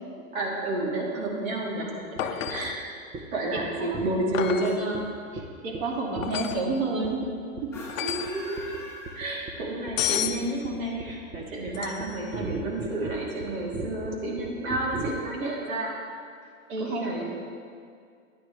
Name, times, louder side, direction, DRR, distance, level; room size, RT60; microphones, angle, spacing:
voice 1, 0.3-1.9 2.2-2.8 3.3-5.1 8.0-8.6 9.1-15.9 16.8-17.2, right 1 dB, 75° right, -3 dB, 3.2 m, -30 dB
sound 1, 2.2-2.8 4.3-4.8 6.2-6.7 7.9-8.4 10.0-10.4 11.7-12.2 15.0-15.1, left 11 dB, 70° left, 0.8 m, -31 dB
sound 2, 2.2-2.3 2.5-2.7 3.1-3.2 3.6-3.7 3.9-4.5 4.9-5.0 5.4-5.5 5.7-5.8 6.2-6.7 7.0-7.3 7.6-7.8 8.1-8.3 8.6-8.8 9.1-15.1, right 3 dB, 20° right, 0.9 m, -36 dB
voice 2, 3.5-4.0 5.6-7.2 7.6-7.7 16.7-17.2, right 3 dB, 50° right, -1 dB, 2.3 m, -30 dB
sound 3, 7.6-9.9, left 2 dB, 5° left, 2.4 m, -43 dB
13.5 x 10.5 x 3.3 m, 2.2 s
hypercardioid pair, 125°, 41 cm